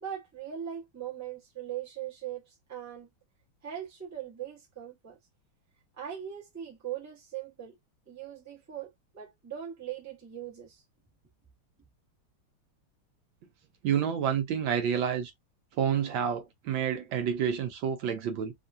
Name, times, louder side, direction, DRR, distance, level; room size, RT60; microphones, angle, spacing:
voice 1, 0.0-3.1 3.6-5.2 6.0-7.7 8.1-10.8, right 10 dB, 15° right, 0.7 m, -40 dB
voice 2, 13.8-15.3 15.8-18.5, right 8 dB, 75° right, 1.3 m, -29 dB
3.5 x 2.2 x 2.5 m
omnidirectional pair, 2.3 m